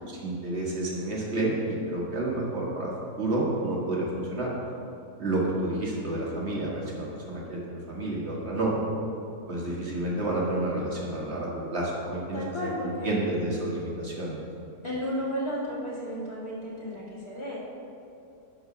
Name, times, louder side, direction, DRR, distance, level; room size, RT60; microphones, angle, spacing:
voice 1, 0.0-2.9 3.2-4.5 5.2-8.8 9.5-12.4 12.8-14.4, right 2 dB, 45° right, -4 dB, 1.7 m, -30 dB
voice 2, 12.3-13.2 14.8-17.6, equal, 20° left, -7 dB, 1.8 m, -33 dB
11.0 x 3.9 x 5.8 m, 2.6 s
omnidirectional pair, 1.7 m